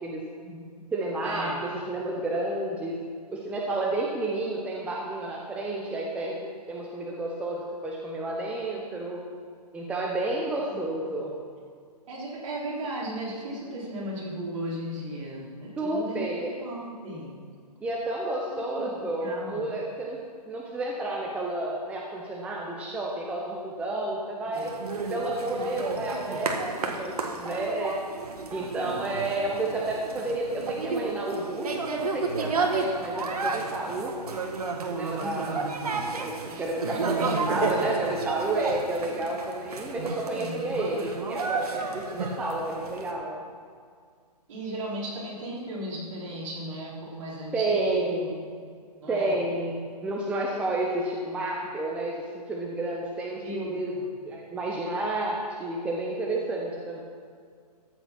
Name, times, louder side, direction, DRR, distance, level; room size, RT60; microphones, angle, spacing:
voice 1, 0.4-0.8 1.2-1.6 10.7-10.8 11.2-11.3 12.1-16.2 16.6-17.4 18.5-18.9 19.2-19.7 24.5-24.8 35.2-35.5 36.4-36.7 37.2-37.7 40.3-40.7 44.5-48.0 48.3-48.5 49.0-49.4 53.4-54.1, right 1 dB, 50° right, -4 dB, 4.1 m, -36 dB
voice 2, 0.9-3.0 3.3-6.4 6.7-9.2 9.7-11.3 15.8-16.5 17.8-24.8 25.1-28.0 28.5-34.1 34.7-35.6 36.0-43.4 47.5-48.4 49.1-53.9 54.2-57.0, right 2 dB, 5° right, -2 dB, 0.7 m, -31 dB
sound 1, 24.5-43.1, right 4 dB, 65° right, 1.8 m, -32 dB
14.0 x 8.6 x 6.0 m, 2.1 s
hypercardioid pair, 150°, 21 cm